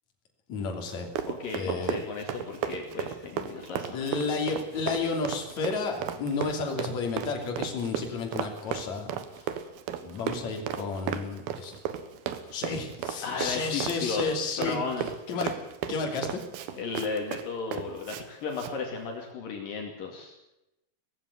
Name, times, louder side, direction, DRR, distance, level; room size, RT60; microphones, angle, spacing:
voice 1, 0.5-1.1 1.5-2.0 3.9-9.1 10.0-11.7 12.5-14.8 15.3-15.5 15.9-16.4, left 4 dB, 50° left, 2 dB, 4.2 m, -31 dB
Run, 0.9-18.2 18.5-18.7, right 9 dB, 85° right, 3.3 m, -35 dB
voice 2, 1.3-4.2 13.2-14.2 14.6-15.1 16.7-20.5, left 5 dB, 65° left, 2 dB, 3.9 m, -35 dB
18.5 x 15.5 x 9.6 m, 0.90 s
omnidirectional pair, 4.3 m